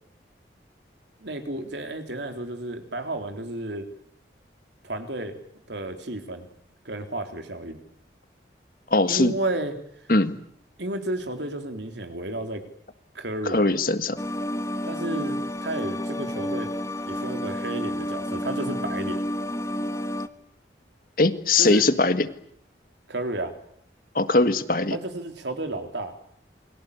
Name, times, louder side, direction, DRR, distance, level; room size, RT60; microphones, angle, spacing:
voice 1, 1.2-3.9 4.8-5.4 5.7-6.5 6.9-7.8 9.1-9.8 10.8-12.7 13.1-13.7 14.9-16.7 17.1-19.2 21.6-21.8 23.1-23.6 24.9-26.1, right 1 dB, 80° right, 6 dB, 3.7 m, -32 dB
voice 2, 8.9-9.3 10.1-10.4 13.5-14.2 21.2-22.3 24.2-25.0, left 2 dB, 50° left, 11 dB, 1.7 m, -21 dB
sound 1, 14.2-20.3, equal, 15° left, 1.2 m, -30 dB
28.5 x 22.5 x 8.4 m, 0.70 s
head